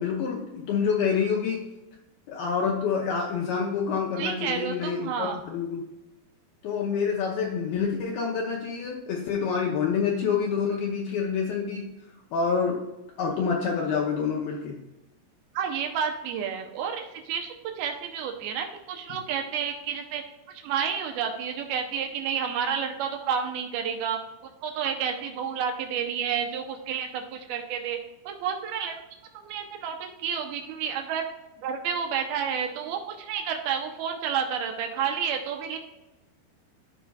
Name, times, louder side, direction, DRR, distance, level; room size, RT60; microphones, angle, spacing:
voice 1, 0.0-1.6 2.3-5.8 6.6-11.8 12.3-12.8 13.2-14.8, left 6 dB, 75° left, -1 dB, 2.4 m, -27 dB
voice 2, 4.2-5.4 15.5-20.2 20.6-24.2 24.6-28.0 28.3-29.0 29.3-31.3 31.6-35.8, right 7 dB, 75° right, 4 dB, 2.5 m, -30 dB
14.0 x 5.0 x 2.3 m, 1.0 s
omnidirectional pair, 4.8 m